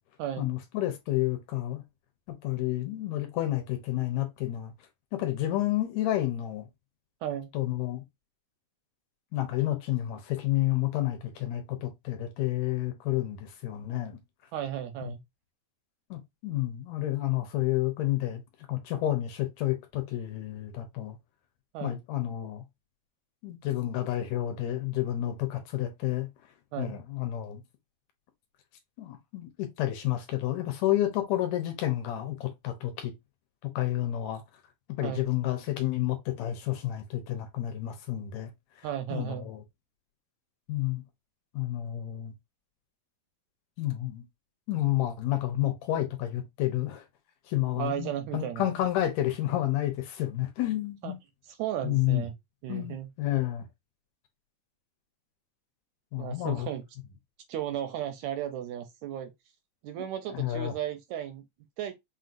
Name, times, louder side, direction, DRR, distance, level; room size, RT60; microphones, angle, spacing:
voice 1, 0.4-1.8 2.4-4.7 5.1-6.7 7.5-8.0 9.3-14.2 15.0-15.1 16.1-18.4 18.7-21.2 21.8-22.6 23.4-26.3 26.8-27.6 29.0-33.1 33.6-34.4 35.0-38.5 38.8-38.9 39.1-39.6 40.7-41.0 41.5-42.3 43.8-44.2 44.7-47.0 47.5-51.2 51.8-52.3 52.7-53.7 56.1-56.7 60.3-60.7, left 14 dB, 75° left, 1.8 m, -30 dB
voice 2, 14.5-15.2 21.7-22.0 26.7-27.0 35.0-35.3 38.8-39.5 47.8-48.7 51.0-51.1 51.6-52.3 52.6-53.1 56.2-56.8 57.5-59.3 59.8-61.4 61.8-61.9, right 11 dB, 80° right, 1.7 m, -34 dB
5.8 x 2.6 x 2.5 m
omnidirectional pair, 3.6 m